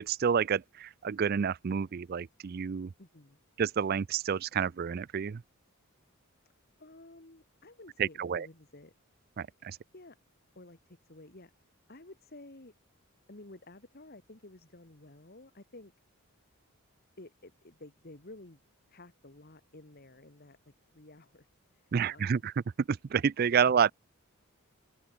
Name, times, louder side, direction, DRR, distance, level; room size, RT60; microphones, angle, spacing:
voice 1, 0.0-2.9 3.6-5.4 8.0-8.5 9.4-9.8 21.9-22.5 22.9-23.9, right 7 dB, 45° right, 0.4 m, -29 dB
voice 2, 3.0-3.4 6.8-8.9 9.9-10.2 10.6-11.5 11.9-12.7 13.3-15.9 17.2-18.6 18.9-21.5 21.7-22.5 23.7-23.9, left 2 dB, 45° left, 1.8 m, -52 dB
head